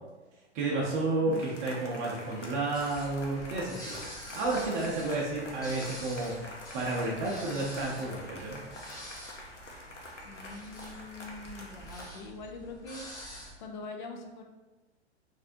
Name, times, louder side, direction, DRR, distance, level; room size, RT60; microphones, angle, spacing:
voice 1, 0.5-4.0 4.3-8.6, right 2 dB, 30° right, -4 dB, 0.6 m, -31 dB
sound 1, 1.3-12.1, left 1 dB, 85° left, 0.8 m, -47 dB
sound 2, 2.7-13.5, equal, 10° left, 0.7 m, -47 dB
voice 2, 10.2-13.1 13.6-14.4, left 3 dB, 45° left, 3 dB, 0.4 m, -43 dB
4.0 x 2.6 x 2.6 m, 1.2 s
figure-of-eight pair, 105°, 35 cm